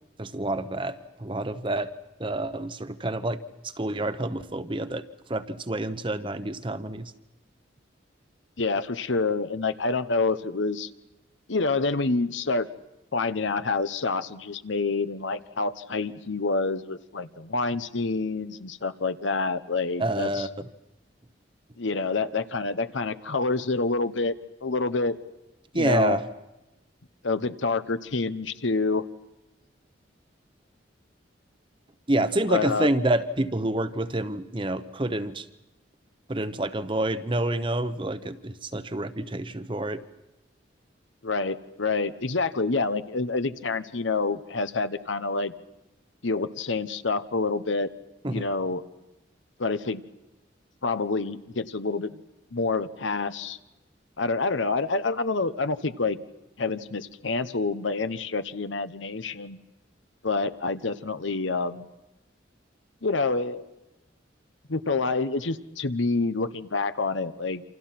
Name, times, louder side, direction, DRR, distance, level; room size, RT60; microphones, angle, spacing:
voice 1, 0.2-1.9 2.2-5.0 5.3-7.1 20.0-20.7 25.7-26.3 32.1-35.5 36.3-40.0 48.2-48.4, right 1 dB, 25° right, 11 dB, 0.9 m, -28 dB
voice 2, 8.6-10.9 11.5-12.7 13.1-20.5 21.8-24.3 24.6-25.2 25.7-26.2 27.2-29.0 32.5-32.9 41.2-45.5 46.2-47.9 48.3-48.8 49.6-50.0 50.8-52.2 52.5-53.6 54.2-56.2 56.6-59.6 60.2-61.9 63.0-63.7 64.7-67.6, left 3 dB, 80° left, 12 dB, 1.1 m, -27 dB
28.0 x 26.5 x 5.9 m, 1.0 s
head